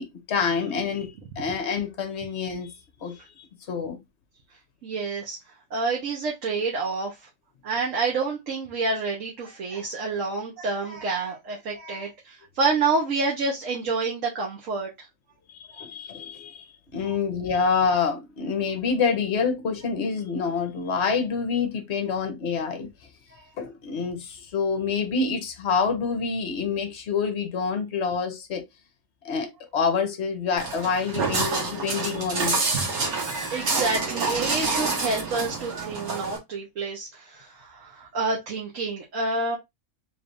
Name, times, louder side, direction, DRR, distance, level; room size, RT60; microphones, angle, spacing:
voice 1, 0.0-2.8 3.0-4.0 15.5-22.9 23.6-28.6 29.2-32.8, left 5 dB, 55° left, 1.0 m, -27 dB
voice 2, 4.8-5.4 5.7-7.2 7.6-15.1 23.4-23.5 31.2-31.4 32.7-33.0 33.5-39.6, right 3 dB, 60° right, 1.4 m, -28 dB
Walk footsteps, 30.6-36.4, right 3 dB, 90° right, 1.8 m, -28 dB
3.6 x 3.2 x 2.6 m
omnidirectional pair, 1.5 m